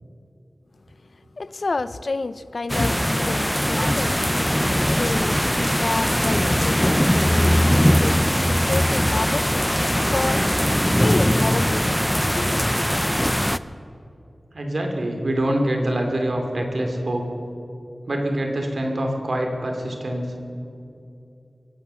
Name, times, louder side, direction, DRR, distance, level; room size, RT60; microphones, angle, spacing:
voice 1, 1.4-9.7 10.1-10.5 11.0-12.0 12.4-12.9, left 3 dB, 70° left, 15 dB, 0.5 m, -30 dB
sound 1, 2.7-13.6, equal, 5° left, 0.5 m, -20 dB
voice 2, 14.5-17.3 18.1-20.3, right 1 dB, 70° right, 2 dB, 2.6 m, -25 dB
23.0 x 8.4 x 6.9 m, 2.7 s
wide cardioid pair, 65°, 0 cm